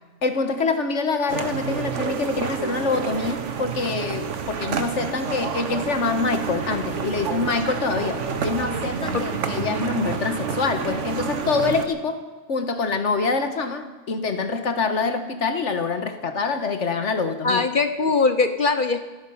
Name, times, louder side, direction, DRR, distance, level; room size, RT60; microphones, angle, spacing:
voice 1, 0.2-12.2 12.5-17.6, left 4 dB, 65° left, 8 dB, 1.6 m, -25 dB
sound 1, 1.3-11.9, right 6 dB, 70° right, 1.4 m, -29 dB
voice 2, 17.4-19.0, left 4 dB, 45° left, 9 dB, 0.9 m, -21 dB
26.5 x 9.3 x 5.6 m, 1.3 s
omnidirectional pair, 1.3 m